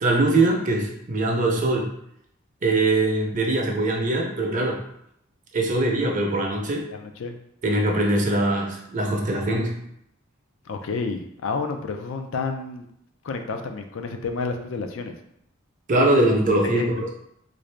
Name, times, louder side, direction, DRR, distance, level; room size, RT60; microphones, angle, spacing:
voice 1, 0.0-1.9 2.6-4.8 5.5-6.8 7.6-9.7 15.9-16.9, right 2 dB, 40° right, 0 dB, 0.6 m, -22 dB
voice 2, 6.9-7.4 10.7-12.8 13.2-15.1 16.6-16.9, left 4 dB, 65° left, 5 dB, 0.4 m, -30 dB
3.7 x 2.6 x 3.2 m, 0.75 s
head